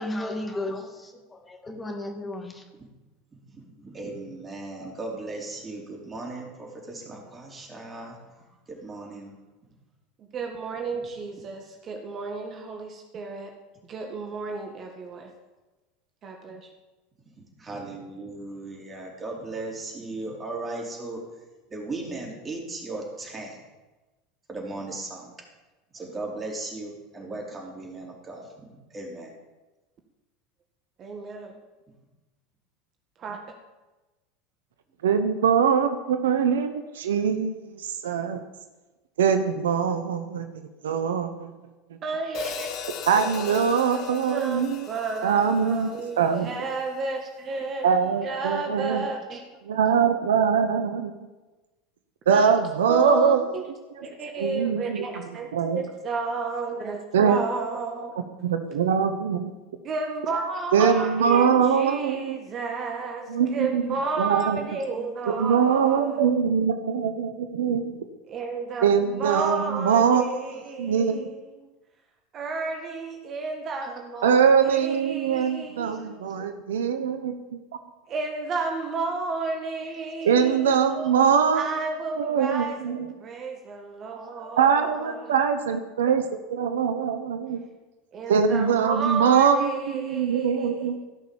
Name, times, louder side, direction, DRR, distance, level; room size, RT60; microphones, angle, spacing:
voice 1, 0.0-2.6, left 1 dB, 15° left, 3 dB, 2.5 m, -34 dB
voice 2, 3.4-9.3 17.2-21.2 21.7-23.6 24.5-25.3 25.9-29.3, right 2 dB, 25° right, -1 dB, 4.3 m, -37 dB
voice 3, 10.2-13.5 13.9-15.3 16.2-16.7 31.0-31.6 33.2-33.4 42.0-42.8 44.3-49.4 52.3-52.5 52.9-53.7 54.0-55.5 55.7-58.5 59.7-66.2 68.3-71.4 72.3-76.5 78.1-81.1 81.5-85.4 88.1-91.0, right 4 dB, 40° right, 3 dB, 1.8 m, -32 dB
voice 4, 35.0-38.4 39.2-41.5 43.1-44.9 45.2-45.9 46.2-46.5 47.8-49.1 49.7-51.1 52.3-53.4 54.0-54.1 54.4-55.1 55.5-55.8 57.1-57.4 58.4-59.5 60.7-62.4 63.3-63.8 64.2-64.6 65.3-68.0 68.8-71.3 74.2-77.6 80.2-81.7 82.2-83.1 84.6-87.6 88.3-91.0, right 7 dB, 75° right, 9 dB, 0.9 m, -23 dB
Hi-hat, 42.3-46.6, left 8 dB, 55° left, 1.8 m, -38 dB
16.5 x 6.4 x 7.2 m, 1.2 s
hypercardioid pair, 80°, 0 cm